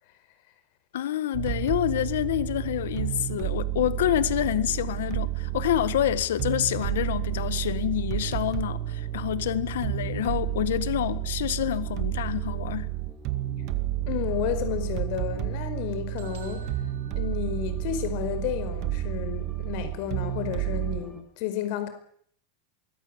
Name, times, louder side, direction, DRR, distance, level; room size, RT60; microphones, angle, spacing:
voice 1, 0.9-12.9, left 12 dB, 80° left, 1.6 m, -27 dB
sound 1, 1.3-21.0, right 15 dB, 35° right, 2.1 m, -31 dB
sound 2, 1.5-21.2, left 3 dB, 5° right, 3.4 m, -45 dB
voice 2, 14.1-16.7 17.1-21.9, left 10 dB, 45° left, 4.9 m, -32 dB
sound 3, 16.2-18.1, right 8 dB, 65° right, 5.7 m, -51 dB
24.0 x 21.5 x 8.1 m
supercardioid pair, 175°, 0 cm